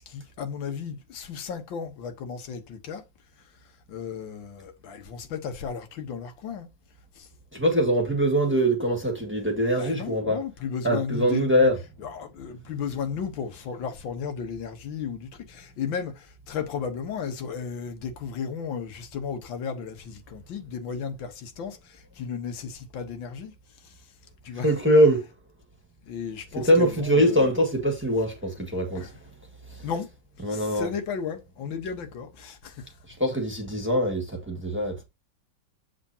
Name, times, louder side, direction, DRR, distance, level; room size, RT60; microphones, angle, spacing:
voice 1, 0.1-3.0 3.9-6.7 7.2-7.3 9.8-11.7 12.0-23.5 24.4-24.7 26.1-27.5 29.0-29.1 29.8-30.1 30.5-32.8, left 6 dB, 90° left, 1.9 m, -34 dB
voice 2, 7.5-10.4 10.8-11.8 24.5-25.2 26.5-29.1 29.7-29.8 30.4-30.9 33.2-35.0, equal, 5° right, 1.5 m, -23 dB
7.7 x 6.0 x 2.8 m
omnidirectional pair, 2.1 m